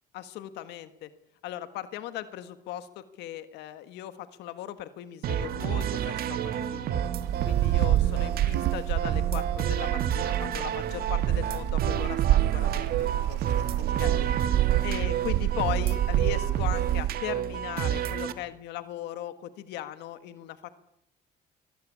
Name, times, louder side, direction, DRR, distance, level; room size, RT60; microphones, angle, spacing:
voice 1, 0.1-1.1 1.4-7.0 7.4-13.4 13.8-14.3 14.8-20.7, left 12 dB, 85° left, 11 dB, 1.5 m, -38 dB
sound 1, 5.2-18.3, right 9 dB, 60° right, 1.9 m, -30 dB
Wind, 7.2-17.2, right 14 dB, 80° right, 0.9 m, -27 dB
24.5 x 19.5 x 8.6 m, 0.81 s
cardioid pair, 110°, 17 cm